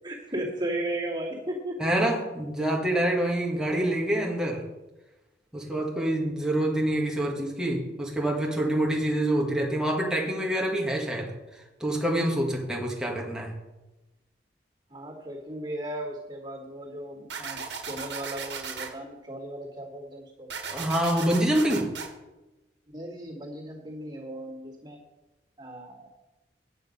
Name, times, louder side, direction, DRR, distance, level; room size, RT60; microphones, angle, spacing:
voice 1, 0.0-1.8 14.9-20.5 22.9-25.0 25.6-26.1, right 1 dB, 25° right, -7 dB, 2.6 m, -36 dB
voice 2, 1.8-4.6 5.5-11.3 11.8-13.5 20.6-21.9, right 1 dB, 5° right, -2 dB, 1.6 m, -26 dB
sound 1, 17.3-18.9 20.5-22.1, right 6 dB, 75° right, 1.6 m, -36 dB
9.4 x 9.3 x 5.4 m, 1.1 s
head